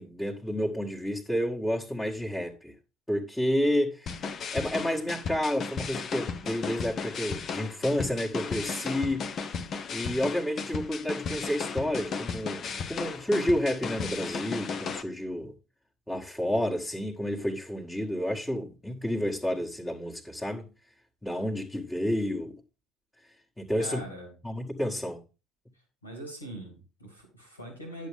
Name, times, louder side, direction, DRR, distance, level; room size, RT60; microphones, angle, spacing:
voice 1, 0.0-2.7 3.1-9.5 9.9-15.5 16.1-20.7 21.2-22.6 23.6-24.0 24.4-25.2, equal, 10° left, 1.7 m, -30 dB
sound 1, 4.1-15.0, left 5 dB, 40° left, 1.0 m, -35 dB
voice 2, 23.8-24.3 26.0-28.1, equal, 85° left, 3.2 m, -41 dB
10.5 x 7.4 x 3.6 m
figure-of-eight pair, 60°, 0 cm